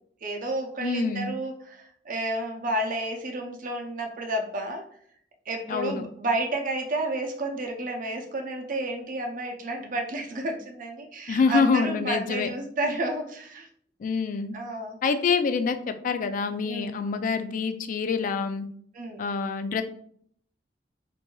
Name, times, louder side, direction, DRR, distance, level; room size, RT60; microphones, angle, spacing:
voice 1, 0.2-4.8 5.5-13.7 14.5-15.0 16.7-16.9 18.9-19.4, right 2 dB, 50° right, 3 dB, 0.6 m, -31 dB
voice 2, 0.8-1.3 5.7-6.0 11.3-12.5 14.0-14.5 15.0-18.7 19.2-19.8, left 5 dB, 45° left, 9 dB, 0.3 m, -26 dB
4.4 x 2.6 x 2.3 m, 0.63 s
head